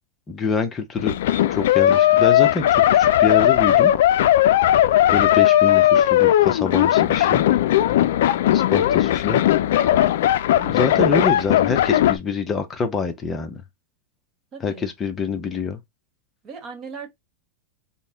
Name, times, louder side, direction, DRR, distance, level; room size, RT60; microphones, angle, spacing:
voice 1, 0.3-1.2 1.5-3.9 5.1-7.4 8.5-9.4 10.6-13.6 14.6-15.8, left 5 dB, 20° left, 0.7 m, -26 dB
sound 1, 1.0-12.2, left 12 dB, 70° left, 0.3 m, -17 dB
voice 2, 7.9-8.2 14.5-14.9 16.4-17.1, right 5 dB, 30° right, 1.2 m, -38 dB
4.0 x 2.1 x 3.4 m
supercardioid pair, 145°, 0 cm